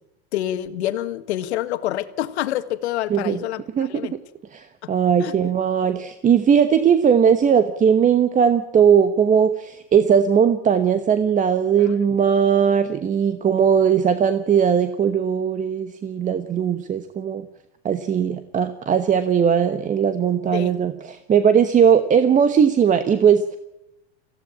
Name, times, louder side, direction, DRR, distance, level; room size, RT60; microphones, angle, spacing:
voice 1, 0.3-4.2 4.8-4.9 5.2-5.3 11.8-12.0 20.5-20.7, left 13 dB, 80° left, 11 dB, 1.7 m, -27 dB
voice 2, 4.5-17.4 17.8-23.6, right 7 dB, 25° right, 11 dB, 1.1 m, -18 dB
19.0 x 15.5 x 8.7 m, 0.88 s
supercardioid pair, 125°, 33 cm